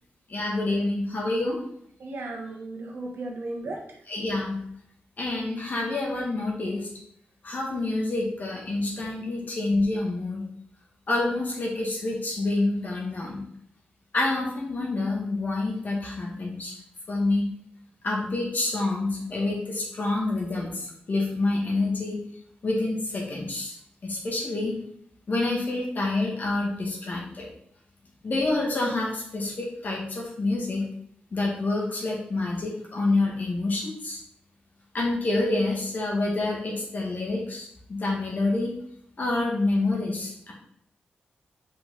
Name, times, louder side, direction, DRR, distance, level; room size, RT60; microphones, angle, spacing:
voice 1, 0.3-1.6 4.1-4.6 5.2-6.9 7.4-10.5 11.1-13.4 14.1-16.7 17.1-17.5 18.0-22.2 22.6-23.7 24.0-24.7 25.3-27.5 28.2-30.9 31.3-34.2 34.9-38.7 39.2-40.5, left 2 dB, 55° left, -3 dB, 1.9 m, -27 dB
voice 2, 2.0-4.0, right 2 dB, 85° right, 0 dB, 1.4 m, -35 dB
5.6 x 5.4 x 4.0 m, 0.68 s
wide cardioid pair, 100°, 4 cm